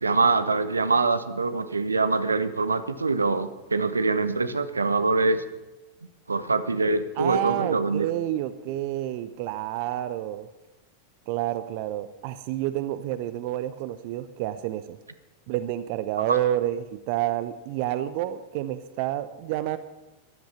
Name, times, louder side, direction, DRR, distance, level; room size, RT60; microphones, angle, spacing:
voice 1, 0.0-5.4 6.3-8.1 16.3-16.4, right 3 dB, 75° right, 12 dB, 1.0 m, -24 dB
voice 2, 7.2-10.5 11.3-15.0 15.5-19.8, right 13 dB, 45° right, 13 dB, 0.7 m, -29 dB
13.5 x 11.5 x 6.9 m, 1.0 s
figure-of-eight pair, 90°, 0 cm